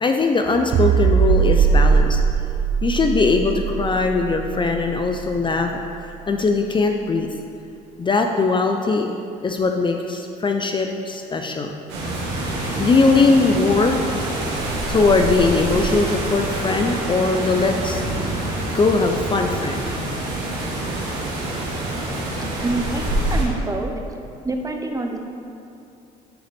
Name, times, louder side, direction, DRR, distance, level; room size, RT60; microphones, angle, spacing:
voice 1, 0.0-2.2 2.8-5.8 6.3-7.3 8.0-9.1 9.4-11.8 12.8-14.0 14.9-18.1 18.6-19.8 20.7-20.9, left 3 dB, 25° left, 4 dB, 0.4 m, -20 dB
sound 1, 0.7-5.2, right 6 dB, 50° right, 0.4 m, -19 dB
sound 2, 11.9-23.4, right 1 dB, 80° right, 1.4 m, -26 dB
voice 2, 22.6-23.0 23.3-23.9 24.4-25.2, right 2 dB, 20° right, 3 dB, 0.7 m, -26 dB
9.1 x 3.9 x 3.4 m, 2.6 s
supercardioid pair, 75°, 18 cm